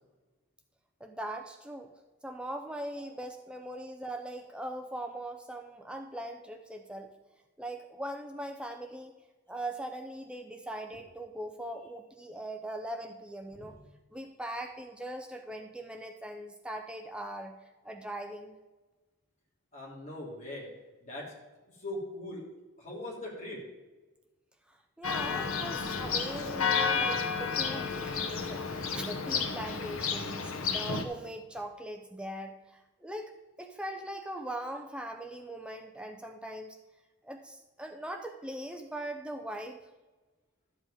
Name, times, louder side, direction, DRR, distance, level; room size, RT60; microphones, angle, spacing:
voice 1, 1.0-1.9 2.2-7.1 7.6-9.1 9.5-13.7 14.1-17.5 17.8-18.6 24.7-36.8 37.2-39.8, right 1 dB, 5° right, 5 dB, 0.5 m, -40 dB
voice 2, 19.7-20.7 21.0-21.2 21.7-22.5 22.8-23.6, left 1 dB, 35° left, -4 dB, 3.2 m, -40 dB
Church bell, 25.0-31.0, left 5 dB, 75° left, 1.1 m, -31 dB
12.0 x 7.4 x 5.1 m, 1.2 s
head